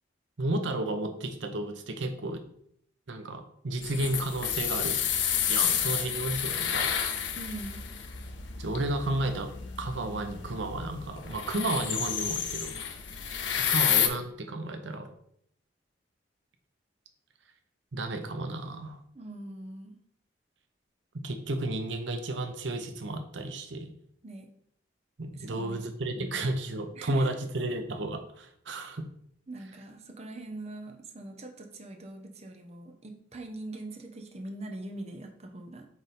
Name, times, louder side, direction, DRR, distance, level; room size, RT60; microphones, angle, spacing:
voice 1, 0.4-2.5 3.1-5.0 5.5-6.9 8.6-9.5 9.8-12.7 13.7-15.1 17.9-19.0 21.2-23.9 25.2-29.1, right 2 dB, 85° right, 6 dB, 0.8 m, -32 dB
sound 1, 3.8-14.1, left 8 dB, 80° left, 0.8 m, -30 dB
voice 2, 7.3-7.8 19.1-20.0 24.2-24.5 25.3-25.8 26.2-26.5 26.9-27.3 29.5-35.9, right 2 dB, 35° right, 3 dB, 0.8 m, -42 dB
8.2 x 3.4 x 4.2 m, 0.68 s
head